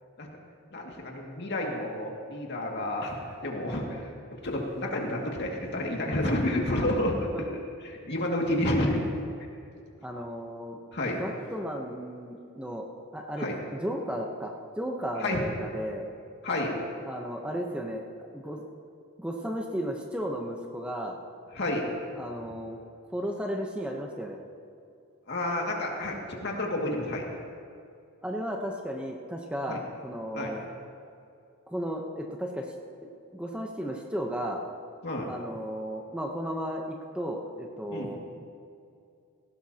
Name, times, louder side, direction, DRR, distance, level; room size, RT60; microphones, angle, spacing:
voice 1, 0.7-3.2 3.4-4.1 4.4-7.2 7.8-9.0 10.9-11.2 13.4-13.6 15.2-15.4 16.4-16.7 21.5-21.9 25.3-27.3 29.7-29.8 30.3-30.5 35.0-35.3 37.9-38.1, left 1 dB, 50° left, -1 dB, 2.2 m, -30 dB
voice 2, 3.7-4.0 7.3-7.4 10.0-10.8 11.2-12.9 13.1-16.1 17.0-18.0 18.3-18.6 19.2-21.2 22.2-22.8 23.1-24.4 28.2-30.6 31.7-32.7 33.3-34.6 35.2-38.2, equal, 5° right, 1 dB, 0.8 m, -34 dB
18.0 x 17.0 x 2.9 m, 2.5 s
head